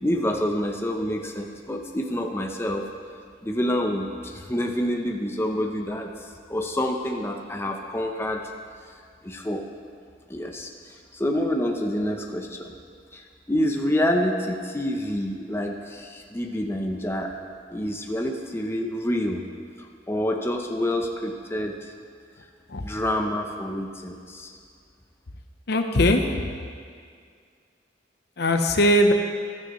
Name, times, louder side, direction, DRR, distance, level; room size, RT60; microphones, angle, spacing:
voice 1, 0.0-2.9 3.4-6.1 6.5-8.5 9.2-9.7 10.3-10.7 11.1-12.7 13.1-17.3 17.7-19.4 19.8-21.9 22.8-24.5, left 1 dB, 15° left, 2 dB, 0.7 m, -27 dB
voice 2, 25.7-26.5 28.4-29.1, left 1 dB, 60° left, 5 dB, 0.8 m, -20 dB
15.0 x 12.5 x 3.1 m, 2.2 s
head